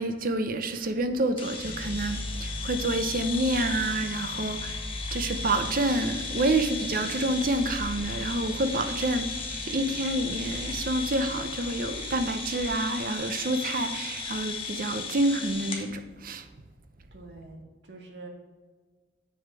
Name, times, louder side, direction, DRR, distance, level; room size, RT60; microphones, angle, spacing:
voice 1, 0.0-4.8 5.1-9.3 9.7-16.4, right 2 dB, 50° right, 8 dB, 0.7 m, -28 dB
sound 1, 1.4-15.9, left 4 dB, 30° left, 1.2 m, -36 dB
sound 2, 1.6-12.4, left 1 dB, 75° left, 0.9 m, -40 dB
voice 2, 17.1-18.3, right 3 dB, 75° right, 1 dB, 1.8 m, -45 dB
7.2 x 6.4 x 4.8 m, 1.4 s
head